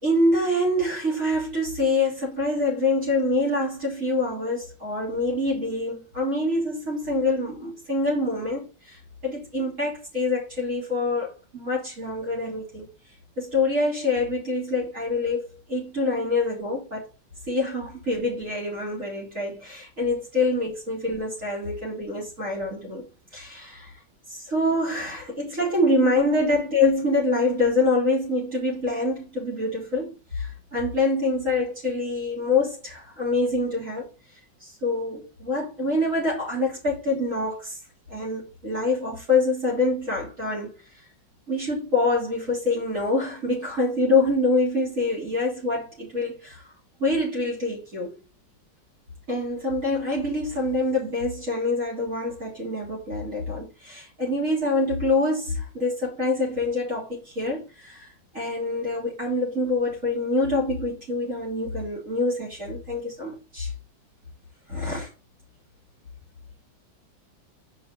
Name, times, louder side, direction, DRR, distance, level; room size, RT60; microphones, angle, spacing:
voice 1, 0.0-12.9 13.4-17.1 17.5-23.1 23.3-23.9 24.3-34.1 34.6-37.8 38.1-40.7 41.5-46.6 47.0-48.2 49.3-58.1 58.3-63.7 64.7-65.1, left 2 dB, 40° right, 3.6 m, -25 dB
6.1 x 5.5 x 4.1 m
omnidirectional pair, 2.0 m